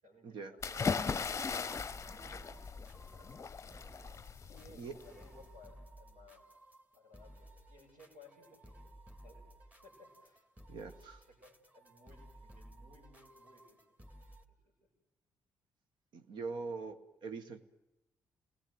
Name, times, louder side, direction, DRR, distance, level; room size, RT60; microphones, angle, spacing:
voice 1, 0.0-1.7 2.1-3.8 4.5-6.4 6.9-10.4 11.2-14.0 14.5-14.9, left 2 dB, 80° right, -4 dB, 6.9 m, -61 dB
sound 1, 0.6-5.4, left 5 dB, 30° left, 0.8 m, -38 dB
sound 2, 1.7-14.5, right 1 dB, 15° right, 2.4 m, -56 dB
voice 2, 10.7-11.2 16.1-17.6, right 4 dB, 60° right, 9 dB, 1.6 m, -43 dB
29.0 x 19.5 x 8.0 m, 0.99 s
figure-of-eight pair, 40°, 9 cm